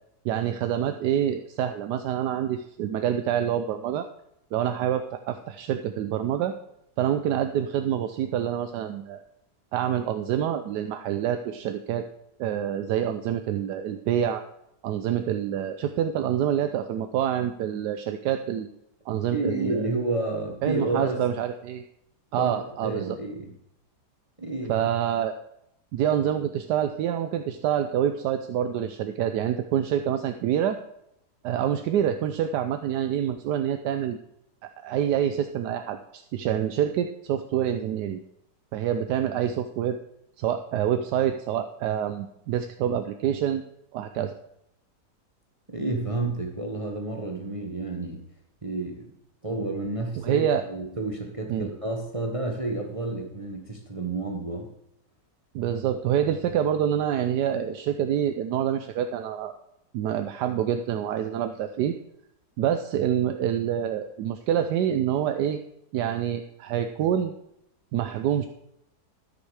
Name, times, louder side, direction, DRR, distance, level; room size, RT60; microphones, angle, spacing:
voice 1, 0.2-4.1 4.5-6.5 7.0-9.2 9.7-12.1 12.4-14.4 14.8-18.7 19.1-19.9 20.6-21.8 22.3-23.2 24.7-25.3 25.9-30.8 31.4-34.2 34.6-38.2 38.7-40.0 40.4-43.6 43.9-44.3 50.2-50.6 51.5-51.7 55.5-59.5 59.9-61.9 62.6-65.6 65.9-67.3 67.9-68.5, right 10 dB, 80° right, 8 dB, 1.2 m, -26 dB
voice 2, 19.3-21.2 22.4-22.5 22.8-23.5 24.4-24.9 45.7-48.2 48.6-49.1 49.4-54.7, right 2 dB, 25° right, 2 dB, 1.0 m, -30 dB
13.5 x 6.5 x 4.7 m, 0.80 s
omnidirectional pair, 1.8 m